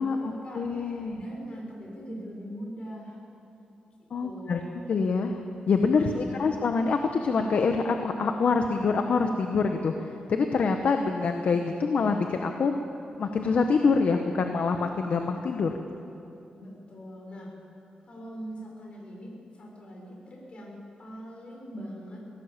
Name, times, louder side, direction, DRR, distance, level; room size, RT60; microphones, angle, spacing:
voice 1, 0.0-3.2 4.2-4.7 5.9-6.5 16.6-17.5 18.0-22.2, equal, 40° left, -1 dB, 6.4 m, -42 dB
voice 2, 0.5-1.2 4.1-4.6 4.9-5.4 5.7-12.7 13.2-15.7, left 4 dB, 60° left, 5 dB, 1.2 m, -25 dB
22.5 x 17.0 x 7.5 m, 2.9 s
wide cardioid pair, 120°, 3 cm